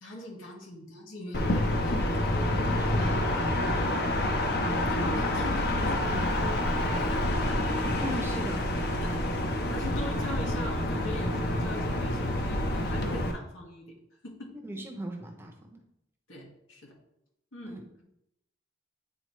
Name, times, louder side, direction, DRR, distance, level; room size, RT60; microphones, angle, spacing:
voice 1, 0.0-2.2 3.0-3.3 4.9-8.0 9.7-13.9 14.2-14.5 16.3-16.9 17.5-18.0, left 1 dB, 90° left, -1 dB, 1.8 m, -41 dB
sound 1, 1.3-13.3, left 1 dB, 50° left, 0.8 m, -28 dB
voice 2, 2.6-4.0 8.0-8.7 14.6-15.8 17.7-17.8, equal, 10° right, 2 dB, 0.7 m, -39 dB
9.0 x 4.1 x 3.1 m, 0.79 s
head